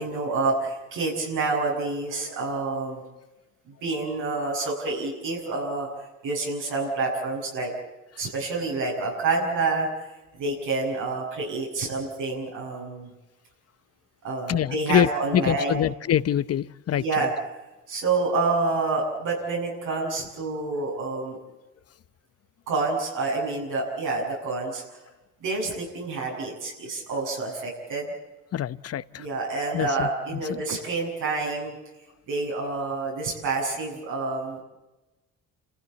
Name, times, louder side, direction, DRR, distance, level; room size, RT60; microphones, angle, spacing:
voice 1, 0.0-3.0 3.8-5.9 6.2-7.7 8.2-9.9 10.4-13.1 14.2-15.8 16.9-17.3 17.9-21.4 22.7-24.8 25.4-28.1 29.2-31.7 32.3-34.6, right 3 dB, 85° right, -2 dB, 7.6 m, -28 dB
voice 2, 14.5-15.1 15.3-17.3 28.5-29.3 29.7-30.1 30.5-30.6, left 10 dB, 55° left, 16 dB, 0.9 m, -25 dB
29.0 x 15.0 x 8.3 m, 1.0 s
cardioid pair, 90°, 30 cm